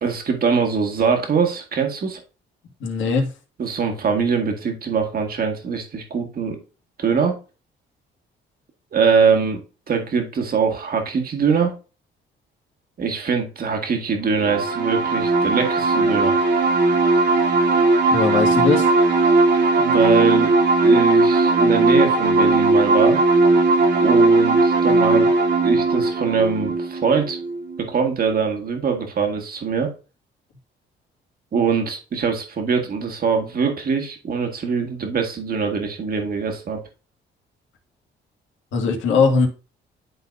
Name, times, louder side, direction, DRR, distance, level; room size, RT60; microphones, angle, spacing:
voice 1, 0.0-2.2 3.6-6.6 7.0-7.4 8.9-9.6 9.9-11.7 13.0-16.3 19.8-20.5 20.8-23.2 24.0-25.3 25.6-27.4 27.8-29.9 31.5-36.8, right 5 dB, 50° right, 1.9 m, -22 dB
voice 2, 2.8-3.3 18.1-18.9 38.7-39.5, left 5 dB, 75° left, 2.2 m, -19 dB
sound 1, 14.4-27.9, right 3 dB, 65° right, 2.2 m, -18 dB
11.5 x 4.0 x 2.6 m
cardioid pair, 90°, 20 cm